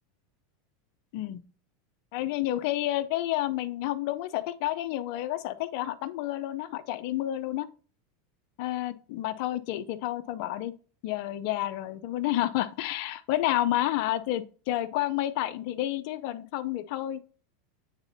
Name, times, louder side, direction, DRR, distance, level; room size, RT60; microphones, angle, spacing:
voice 1, 2.1-7.7 8.6-10.7 11.0-17.2, left 14 dB, 60° left, 0.5 m, -30 dB
8.8 x 4.0 x 2.7 m
hypercardioid pair, 105°, 0 cm